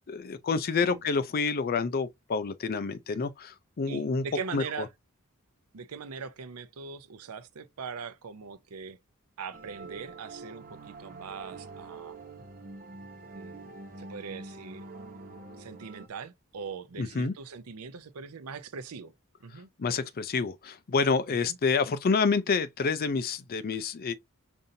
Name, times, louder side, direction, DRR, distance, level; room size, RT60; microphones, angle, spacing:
voice 1, 0.1-4.2 4.5-4.9 17.0-17.3 19.5-24.1, left 4 dB, 45° left, 0.4 m, -28 dB
voice 2, 3.9-4.9 5.7-9.0 9.4-12.2 13.3-14.9 15.6-19.1 19.4-19.7 21.3-21.4, right 5 dB, 80° right, 0.6 m, -41 dB
sound 1, 9.5-16.1, right 3 dB, 40° right, 0.9 m, -45 dB
5.3 x 2.7 x 2.6 m
head